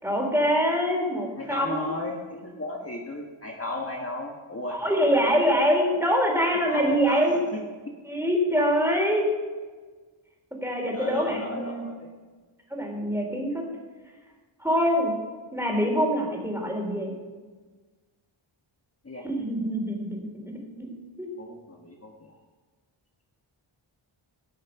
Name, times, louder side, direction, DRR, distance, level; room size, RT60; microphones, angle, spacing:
voice 1, 0.0-1.9 4.7-7.4 8.0-9.3 10.6-11.8 12.7-13.6 14.6-15.1 15.5-17.1 19.2-21.3, equal, 5° right, -1 dB, 3.5 m, -25 dB
voice 2, 1.3-5.3 6.7-7.4 10.9-12.1 19.0-19.2 21.4-22.4, left 2 dB, 30° left, -1 dB, 1.4 m, -35 dB
17.5 x 6.5 x 5.9 m, 1.4 s
wide cardioid pair, 95°, 49 cm